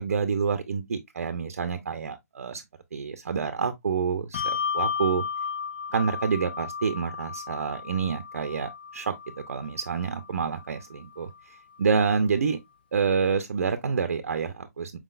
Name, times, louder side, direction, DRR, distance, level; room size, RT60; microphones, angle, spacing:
voice 1, 0.0-2.6 2.9-5.2 5.9-9.1 9.5-11.3 11.8-12.6 12.9-15.0, right 5 dB, 60° right, 0.7 m, -28 dB
Bell, 4.3-11.2, left 6 dB, 35° left, 0.4 m, -34 dB
4.9 x 3.8 x 2.4 m
hypercardioid pair, 160°, 9 cm